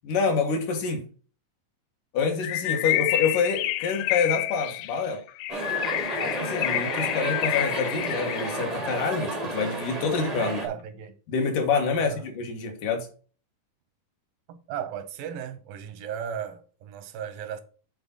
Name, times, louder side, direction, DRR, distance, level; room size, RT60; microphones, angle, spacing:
voice 1, 0.0-1.0 2.1-5.2 6.2-10.7 11.3-13.1, left 5 dB, 70° left, 3.1 m, -27 dB
Bird, 2.4-8.7, left 15 dB, 90° left, 1.6 m, -29 dB
sound 1, 5.5-10.7, right 2 dB, 60° right, 0.4 m, -32 dB
voice 2, 10.4-11.1 12.0-12.3 14.5-17.6, right 8 dB, 85° right, 2.7 m, -36 dB
8.8 x 4.4 x 3.9 m
omnidirectional pair, 3.9 m